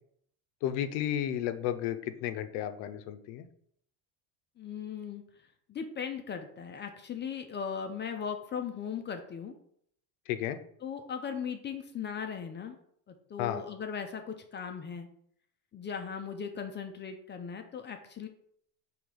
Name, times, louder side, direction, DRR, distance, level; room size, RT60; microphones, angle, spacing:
voice 1, 0.6-3.5 10.3-10.6 13.4-13.6, left 11 dB, 75° left, 10 dB, 0.6 m, -33 dB
voice 2, 4.6-5.2 5.7-9.5 10.8-12.8 13.1-15.1 15.7-18.3, left 7 dB, 25° left, 5 dB, 0.3 m, -38 dB
3.8 x 2.9 x 4.7 m, 0.67 s
supercardioid pair, 105°, 47 cm